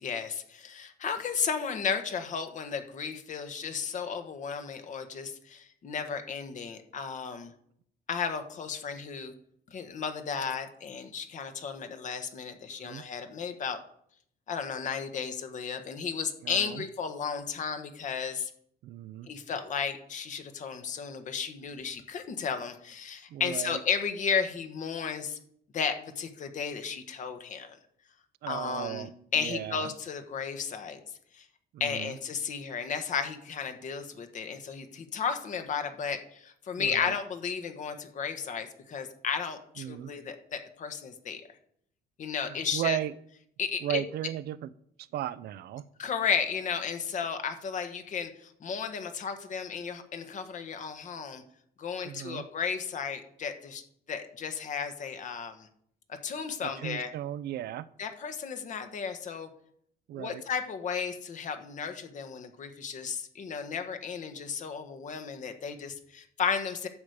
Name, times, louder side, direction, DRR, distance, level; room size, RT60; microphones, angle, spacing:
voice 1, 0.0-7.5 8.1-9.3 9.7-13.8 14.5-18.5 19.3-25.4 25.7-27.8 28.5-31.0 31.3-31.4 31.8-41.4 42.2-43.0 43.6-44.0 46.0-51.4 51.8-53.8 54.1-55.7 56.2-57.1 58.0-59.5 60.2-66.9, left 6 dB, 45° left, 7 dB, 1.4 m, -34 dB
voice 2, 16.4-16.9 18.8-19.3 23.3-23.8 28.4-29.1 29.4-29.9 31.7-32.1 36.8-37.1 39.8-40.1 42.5-43.1 43.8-44.7 45.0-45.8 52.0-52.5 56.6-57.9 60.1-60.4, right 12 dB, 70° right, 17 dB, 0.6 m, -36 dB
12.0 x 5.1 x 8.1 m, 0.69 s
cardioid pair, 145°, 17 cm